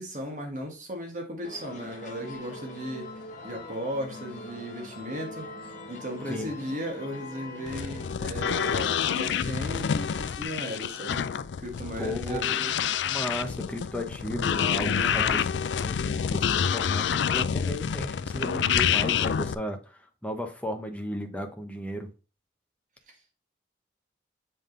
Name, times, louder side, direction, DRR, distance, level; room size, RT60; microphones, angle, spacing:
voice 1, 0.0-3.1 3.4-11.3 11.6-12.5 14.9-15.4 18.4-18.9 23.1-23.2, equal, 45° right, 1.6 m, -36 dB
sound 1, 1.4-8.1, left 2 dB, 45° left, 1.4 m, -43 dB
sound 2, 7.7-19.5, left 8 dB, 80° left, 0.4 m, -28 dB
voice 2, 12.0-12.7 13.0-22.1, equal, 5° left, 0.9 m, -35 dB
7.4 x 3.6 x 3.9 m
head